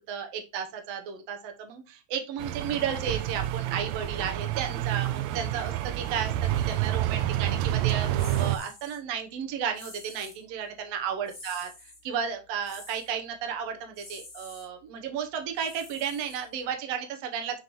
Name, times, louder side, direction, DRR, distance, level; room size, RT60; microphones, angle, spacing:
voice 1, 0.1-17.6, right 7 dB, 65° right, 5 dB, 1.8 m, -33 dB
sound 1, 2.4-8.6, right 13 dB, 90° right, 1.5 m, -28 dB
sound 2, 8.2-9.0 9.7-10.4 11.3-12.0 12.6-13.1 13.9-14.7 15.6-16.7, left 2 dB, 30° left, 0.9 m, -47 dB
6.3 x 5.5 x 3.1 m, 0.29 s
omnidirectional pair, 3.7 m